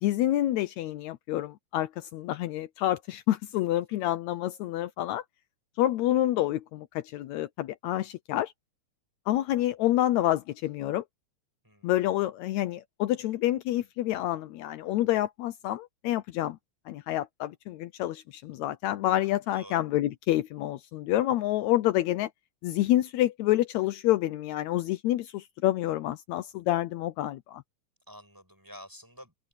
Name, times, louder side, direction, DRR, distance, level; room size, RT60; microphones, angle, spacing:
voice 1, 0.0-5.2 5.8-8.5 9.3-11.1 11.8-16.6 16.9-22.3 22.6-27.6, left 14 dB, 80° left, 2.0 m, -28 dB
voice 2, 28.1-29.5, equal, 5° right, 7.7 m, -49 dB
open air
omnidirectional pair, 3.4 m